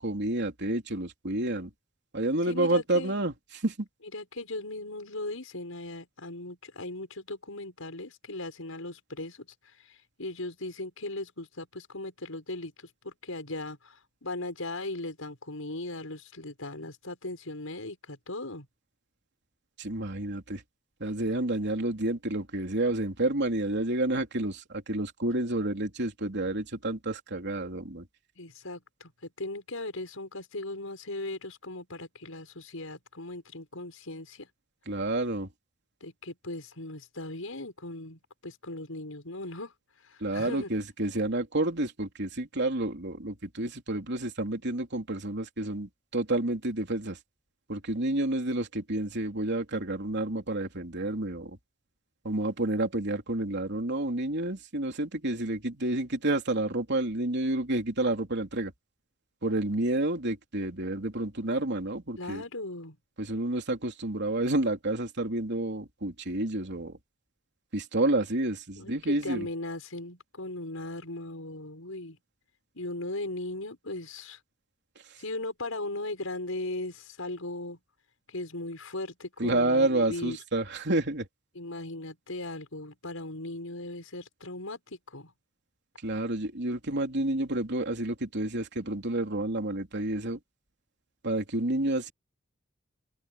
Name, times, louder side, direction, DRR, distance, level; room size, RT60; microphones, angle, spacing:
voice 1, 0.0-1.7 2.1-3.9 19.8-20.6 21.0-28.1 34.9-35.5 40.2-47.2 47.7-51.6 52.2-58.7 59.4-62.4 63.2-67.0 67.7-69.5 79.4-81.3 86.0-90.4 91.2-92.1, right 2 dB, 60° right, 3.5 m, -29 dB
voice 2, 2.5-3.1 4.1-9.5 9.9-18.7 28.4-34.5 36.0-39.7 40.0-40.7 62.2-63.0 68.8-72.2 72.7-74.4 75.2-77.8 78.3-80.4 81.5-85.3, left 2 dB, 90° left, 6.2 m, -38 dB
open air
head